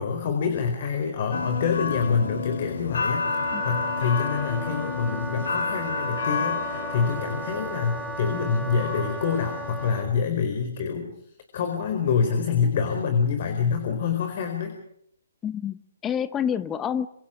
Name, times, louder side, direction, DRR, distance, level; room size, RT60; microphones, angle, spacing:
voice 1, 0.0-11.1 11.5-14.8, left 6 dB, 45° left, 6 dB, 4.4 m, -26 dB
sound 1, 1.3-10.0, left 4 dB, 65° left, 4.5 m, -31 dB
Wind instrument woodwind instrument, 3.1-10.1, right 2 dB, ahead, 1.5 m, -36 dB
voice 2, 15.4-17.1, left 8 dB, 15° left, 15 dB, 0.9 m, -28 dB
28.0 x 27.0 x 5.1 m, 0.71 s
figure-of-eight pair, 130°, 0 cm